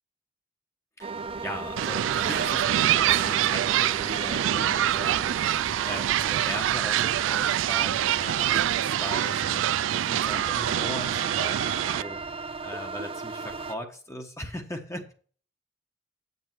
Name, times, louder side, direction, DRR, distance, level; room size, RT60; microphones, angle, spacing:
voice 1, 1.0-12.2 12.6-15.1, left 1 dB, 15° left, 3 dB, 1.2 m, -39 dB
sound 1, 1.0-13.7, right 3 dB, 30° right, 0.5 m, -37 dB
sound 2, 1.8-8.8, right 5 dB, 50° right, 0.9 m, -44 dB
sound 3, 1.8-12.0, right 11 dB, 85° right, 0.3 m, -25 dB
8.1 x 8.0 x 4.6 m, 0.43 s
head